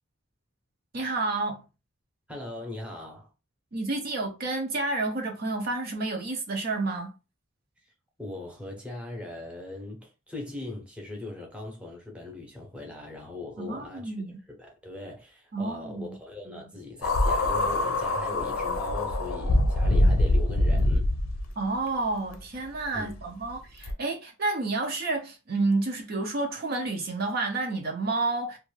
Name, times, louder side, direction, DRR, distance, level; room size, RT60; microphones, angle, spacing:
voice 1, 0.9-1.6 3.7-7.1 13.6-14.3 15.5-16.2 16.5-16.6 21.6-28.6, right 3 dB, 45° right, 0.5 m, -30 dB
voice 2, 2.3-3.3 7.8-7.9 8.2-21.0 22.9-23.1, left 2 dB, 5° right, 0.7 m, -40 dB
sound 1, 17.0-21.5 22.3-22.4 23.8-23.9, left 1 dB, 85° left, 0.6 m, -24 dB
2.6 x 2.2 x 3.1 m
head